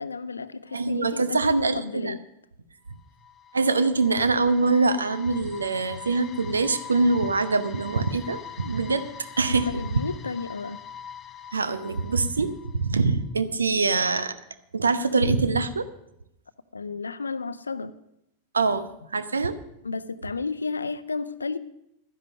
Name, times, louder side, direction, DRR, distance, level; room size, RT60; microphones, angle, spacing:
voice 1, 0.0-2.2 9.5-10.8 16.7-18.0 19.8-21.6, left 4 dB, 75° left, 15 dB, 0.6 m, -32 dB
voice 2, 0.7-2.1 3.5-9.0 9.4-9.7 11.5-14.4 14.7-15.8 18.5-19.6, right 3 dB, 75° right, 13 dB, 0.8 m, -24 dB
sound 1, 2.9-13.0, left 8 dB, 25° left, 0.8 m, -43 dB
12.0 x 10.5 x 6.5 m, 0.81 s
figure-of-eight pair, 90°, 0 cm